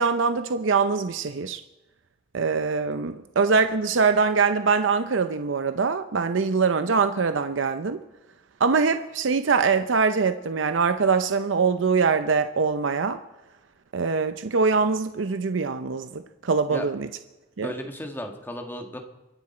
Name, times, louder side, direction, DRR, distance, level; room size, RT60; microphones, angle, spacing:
voice 1, 0.0-1.6 2.3-8.0 8.6-13.2 13.9-17.1 17.6-17.7, right 5 dB, 85° right, 9 dB, 0.6 m, -23 dB
voice 2, 17.6-19.0, equal, 10° left, 4 dB, 1.6 m, -34 dB
24.0 x 9.9 x 4.3 m, 1.1 s
head